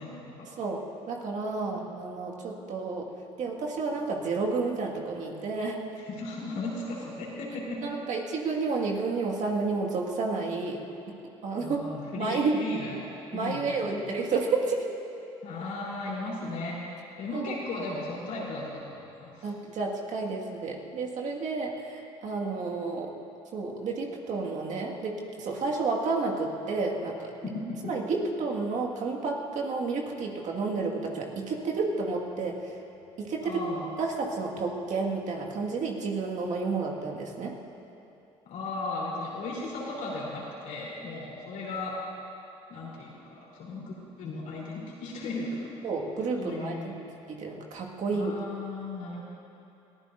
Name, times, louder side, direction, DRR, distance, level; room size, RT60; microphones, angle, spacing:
voice 1, 0.0-0.5 1.7-1.9 6.1-7.8 11.6-12.9 13.3-14.1 15.4-16.8 17.2-19.5 27.4-27.9 33.4-33.8 38.5-42.0 42.7-45.7 46.4-46.9 48.1-49.2, left 2 dB, 70° left, -5 dB, 3.6 m, -36 dB
voice 2, 0.6-3.1 3.4-5.8 7.8-10.8 11.4-11.8 12.2-12.6 13.3-14.9 17.3-17.6 19.4-23.2 23.5-27.3 27.8-32.8 33.2-33.6 34.0-37.5 45.8-46.9 47.3-48.3, right 4 dB, 60° right, -1 dB, 1.9 m, -31 dB
21.5 x 14.5 x 2.6 m, 2.8 s
supercardioid pair, 65°, 14 cm